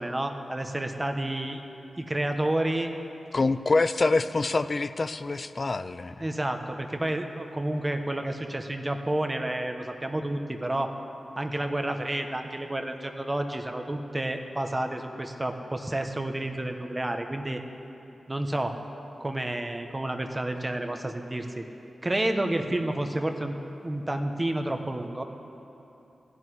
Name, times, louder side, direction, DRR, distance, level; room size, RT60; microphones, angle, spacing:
voice 1, 0.0-1.6 2.0-2.9 6.2-10.9 11.4-17.6 18.3-18.7 19.2-21.6 22.0-23.6 23.8-25.2, right 1 dB, 25° right, 5 dB, 1.2 m, -30 dB
voice 2, 3.3-6.2, left 3 dB, 50° left, 13 dB, 0.5 m, -26 dB
15.0 x 7.8 x 9.9 m, 3.0 s
cardioid pair, 40°, 0 cm